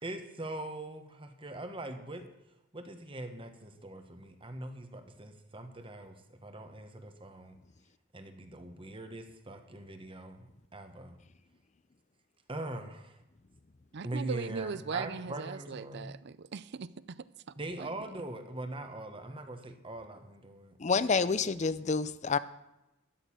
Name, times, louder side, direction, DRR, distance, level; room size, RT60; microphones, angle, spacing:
voice 1, 0.0-2.2 2.7-7.6 8.1-10.5 10.7-11.2 12.5-13.2 14.0-16.1 17.6-20.7, right 2 dB, 25° right, 1.3 m, -42 dB
voice 2, 13.9-17.2 17.8-17.9, right 5 dB, 55° right, 0.5 m, -39 dB
voice 3, 20.8-22.4, left 4 dB, 35° left, 0.5 m, -28 dB
13.0 x 6.6 x 9.0 m
head